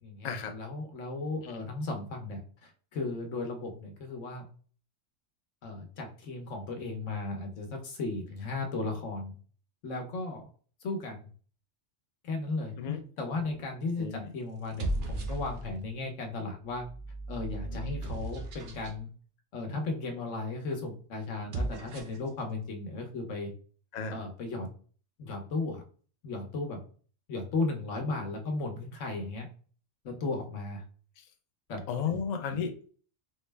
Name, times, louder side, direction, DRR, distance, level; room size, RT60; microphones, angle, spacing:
voice 1, 0.0-4.4 5.6-9.4 9.8-10.4 10.8-11.3 12.2-12.7 13.2-16.9 17.3-19.1 19.5-23.5 24.1-24.7 25.2-25.8 26.2-26.8 27.3-29.5 30.0-30.8 31.7-32.2, left 3 dB, 80° left, 3 dB, 1.2 m, -35 dB
sound 1, 13.3-13.7 14.6-15.9 16.7-19.0 21.3-22.3, right 1 dB, 60° right, 0.8 m, -36 dB
voice 2, 14.0-14.3 23.9-24.2 31.2-31.3 31.9-32.9, left 6 dB, 50° left, 6 dB, 0.5 m, -33 dB
4.2 x 2.1 x 3.3 m, 0.42 s
omnidirectional pair, 1.3 m